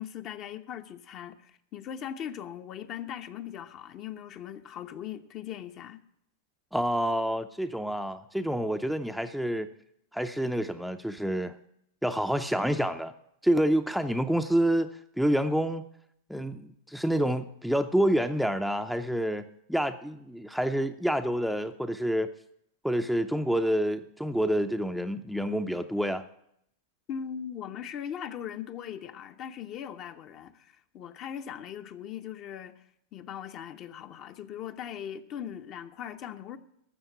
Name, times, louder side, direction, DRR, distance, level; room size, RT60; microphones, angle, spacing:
voice 1, 0.0-6.0 27.1-32.8 33.1-36.6, left 9 dB, 40° left, 0.9 m, -39 dB
voice 2, 6.7-9.7 10.1-11.6 12.0-13.1 13.4-15.9 16.3-22.3 22.8-26.3, equal, ahead, 0.6 m, -28 dB
12.5 x 7.2 x 8.3 m
figure-of-eight pair, 95°, 0 cm